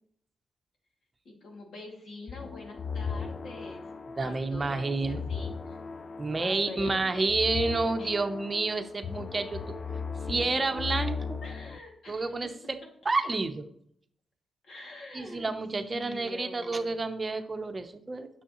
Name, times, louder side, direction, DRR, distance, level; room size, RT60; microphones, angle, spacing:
voice 1, 1.2-3.9 4.2-5.8 6.4-7.4 8.0-8.1 11.4-12.3 14.6-15.5 15.9-17.0, left 2 dB, 65° left, -1 dB, 2.4 m, -45 dB
sound 1, 2.3-11.8, left 5 dB, 40° left, 0.4 m, -37 dB
voice 2, 4.2-5.2 6.2-9.6 10.3-11.4 12.1-12.8 13.0-13.7 15.1-18.3, right 3 dB, 30° right, 7 dB, 0.8 m, -29 dB
9.6 x 6.4 x 3.0 m, 0.66 s
cardioid pair, 115°, 0 cm